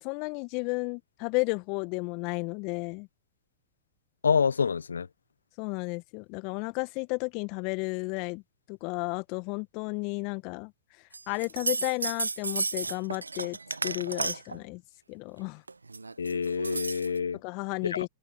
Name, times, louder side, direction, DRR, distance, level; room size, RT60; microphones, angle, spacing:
voice 1, 0.0-3.1 5.6-8.4 8.7-10.7 11.3-13.6 13.8-14.8 15.1-15.6 17.4-18.1, left 30 dB, 45° left, 1.9 m, -33 dB
voice 2, 4.2-5.1 16.2-17.4 17.9-18.0, left 6 dB, 80° left, 1.2 m, -27 dB
sound 1, 11.1-14.6 15.7-17.2, right 3 dB, 85° right, 1.2 m, -33 dB
figure-of-eight pair, 95°, 0 cm